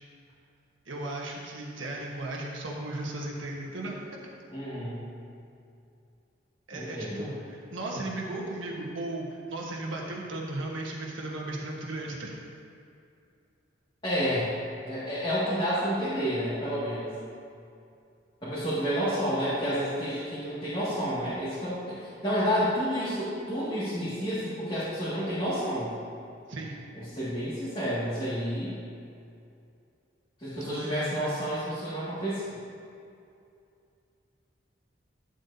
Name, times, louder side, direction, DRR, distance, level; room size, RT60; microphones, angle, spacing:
voice 1, 0.8-4.0 6.7-12.3 26.5-26.8 30.6-31.4, right 2 dB, 85° right, -2 dB, 1.4 m, -36 dB
voice 2, 4.5-5.0 6.7-7.3 14.0-14.5 14.9-17.2 18.4-25.9 26.9-28.8 30.4-32.6, equal, 25° left, -13 dB, 2.1 m, -30 dB
11.0 x 7.8 x 2.8 m, 2.5 s
head